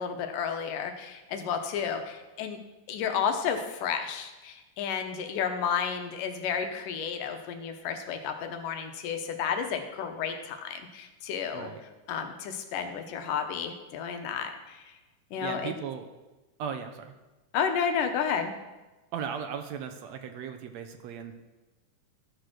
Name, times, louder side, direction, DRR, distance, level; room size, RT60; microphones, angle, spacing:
voice 1, 0.0-2.6 2.9-11.7 12.1-15.0 15.3-15.7 17.5-18.5, left 7 dB, 80° left, 6 dB, 2.5 m, -32 dB
voice 2, 15.4-16.1 16.6-17.2 19.1-21.3, right 7 dB, 75° right, 6 dB, 1.7 m, -37 dB
13.0 x 6.6 x 6.1 m, 1.1 s
omnidirectional pair, 3.8 m